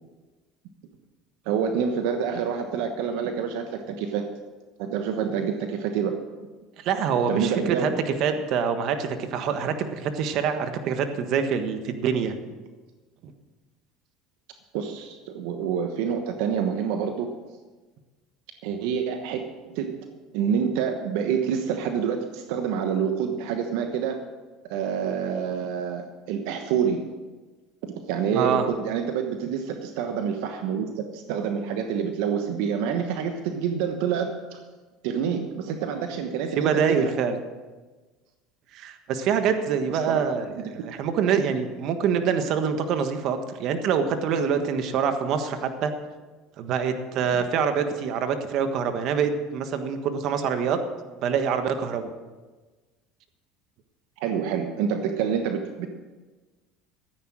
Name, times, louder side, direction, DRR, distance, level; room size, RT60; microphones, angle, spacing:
voice 1, 1.4-4.3 4.8-6.2 7.3-8.0 14.7-17.3 18.6-20.0 20.3-24.2 24.7-27.1 28.1-34.6 35.0-37.1 39.9-40.7 54.2-55.9, right 7 dB, 75° right, 5 dB, 1.2 m, -27 dB
voice 2, 6.8-7.9 8.2-12.3 13.2-13.3 28.3-28.7 36.6-37.4 38.7-40.5 40.7-45.9 46.6-50.8 51.2-52.1, right 6 dB, 55° right, 8 dB, 1.4 m, -25 dB
13.5 x 9.8 x 6.3 m, 1.3 s
supercardioid pair, 110°, 0 cm